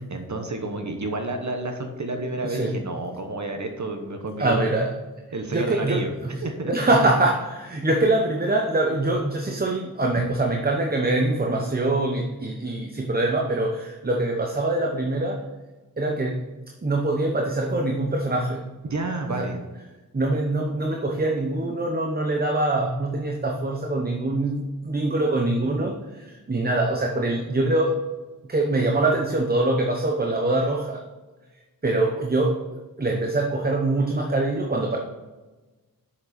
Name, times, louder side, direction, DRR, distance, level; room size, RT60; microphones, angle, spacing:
voice 1, 0.0-4.6 5.3-6.1 6.4-6.7 18.8-19.6, right 2 dB, 55° right, 5 dB, 1.1 m, -30 dB
voice 2, 2.4-2.8 4.4-4.9 5.5-15.4 16.0-16.5 16.8-18.7 19.3-19.5 20.1-28.0 28.5-31.0 31.8-32.6 33.0-35.0, right 2 dB, 25° right, 1 dB, 0.9 m, -24 dB
7.6 x 6.6 x 4.3 m, 1.2 s
wide cardioid pair, 85°, 35 cm